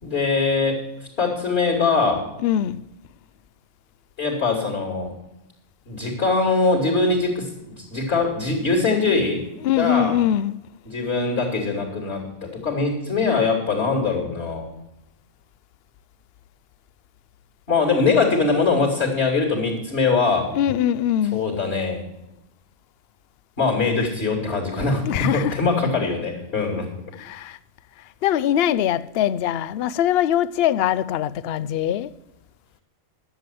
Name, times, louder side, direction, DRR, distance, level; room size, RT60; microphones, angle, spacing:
voice 1, 0.0-0.8 1.2-2.3 4.2-5.1 5.9-7.5 7.9-9.4 9.8-10.2 10.8-14.7 17.7-20.5 21.3-22.0 23.6-26.9, left 4 dB, 45° left, 3.1 m, -22 dB
voice 2, 2.4-2.8 9.6-10.6 20.5-21.4 25.0-25.6 27.2-27.6 28.2-32.1, left 11 dB, 60° left, 0.6 m, -22 dB
11.0 x 7.7 x 7.7 m
omnidirectional pair, 1.4 m